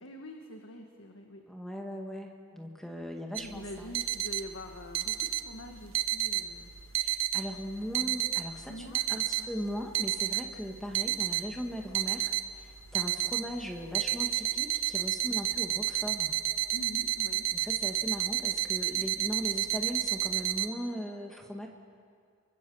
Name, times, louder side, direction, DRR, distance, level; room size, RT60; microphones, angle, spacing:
voice 1, 0.0-1.4 3.4-6.7 8.7-9.5 16.7-17.5, left 1 dB, 75° left, 3 dB, 1.8 m, -45 dB
voice 2, 1.5-4.0 7.0-16.4 17.5-21.7, equal, ahead, 1 dB, 1.8 m, -39 dB
sound 1, 3.4-20.7, right 14 dB, 75° right, 1.0 m, -31 dB
29.5 x 24.0 x 7.2 m, 2.2 s
head